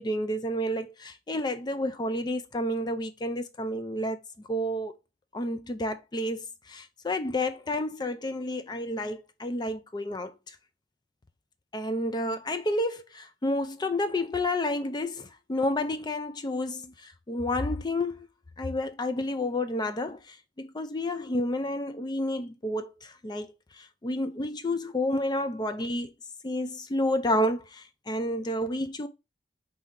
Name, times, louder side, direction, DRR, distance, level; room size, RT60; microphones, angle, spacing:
voice 1, 0.0-4.2 4.5-4.9 5.3-10.6 11.7-18.3 18.6-26.1 26.4-29.1, left 1 dB, 25° left, 0.4 m, -30 dB
4.5 x 2.7 x 3.6 m
head